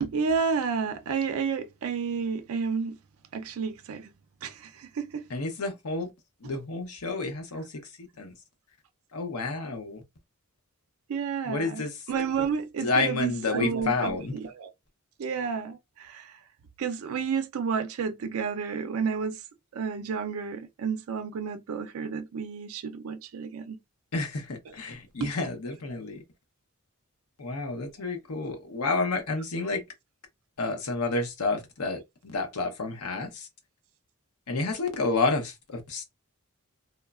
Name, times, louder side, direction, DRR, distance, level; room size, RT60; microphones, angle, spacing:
voice 1, 0.0-3.0 3.3-4.1 4.4-5.3 11.1-14.7 15.2-16.4 16.8-19.4 19.7-23.8 24.7-24.8 25.2-25.3, right 6 dB, 75° right, 0.4 m, -31 dB
voice 2, 5.3-6.1 6.4-7.7 8.2-8.3 9.1-10.0 11.5-11.9 12.8-14.4 24.1-26.2 27.4-29.8 30.6-32.0 32.3-33.5 34.5-36.0, left 3 dB, 85° left, 0.7 m, -30 dB
3.0 x 2.1 x 2.3 m
head